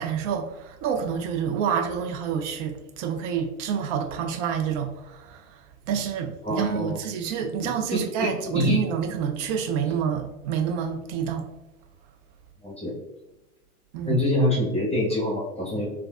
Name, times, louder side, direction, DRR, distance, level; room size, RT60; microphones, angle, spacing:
voice 1, 0.0-5.4 5.9-11.4 13.9-14.2, right 7 dB, 55° right, 0.6 m, -28 dB
voice 2, 6.4-7.0 7.6-8.8 12.6-12.9 14.0-15.9, left 1 dB, 15° left, 1.2 m, -26 dB
3.3 x 2.3 x 2.3 m
hypercardioid pair, 95°, 44 cm